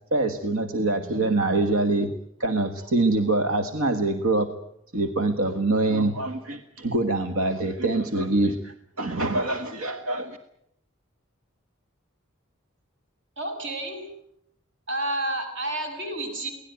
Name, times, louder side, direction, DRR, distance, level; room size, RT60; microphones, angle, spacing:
voice 1, 0.1-2.1 2.4-4.5 4.9-10.4, right 2 dB, 90° right, 7 dB, 1.6 m, -24 dB
voice 2, 13.4-14.1 14.9-16.5, right 1 dB, 60° right, 4 dB, 7.6 m, -30 dB
24.0 x 18.0 x 9.2 m, 0.75 s
head